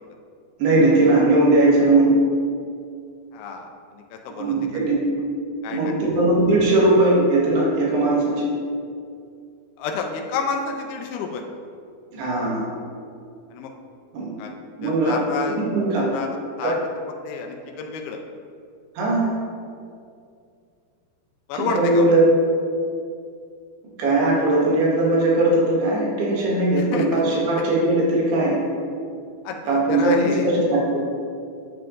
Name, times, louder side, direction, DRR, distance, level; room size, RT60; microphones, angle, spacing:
voice 1, 0.6-2.2 4.4-5.0 5.7-8.5 12.1-12.7 14.1-14.4 14.8-15.2 15.7-16.1 16.6-16.7 18.9-19.4 21.5-22.3 24.0-28.6 29.7-31.0, right 2 dB, 70° right, -5 dB, 3.3 m, -19 dB
voice 2, 3.3-3.7 3.9-4.5 5.6-5.8 6.2-6.3 9.8-11.4 13.5-13.7 14.4-14.5 14.8-15.6 16.0-16.8 17.2-18.2 21.5-22.1 26.7-27.2 29.4-30.5, left 5 dB, 85° left, 3 dB, 2.2 m, -30 dB
10.5 x 7.6 x 2.6 m, 2.3 s
omnidirectional pair, 5.2 m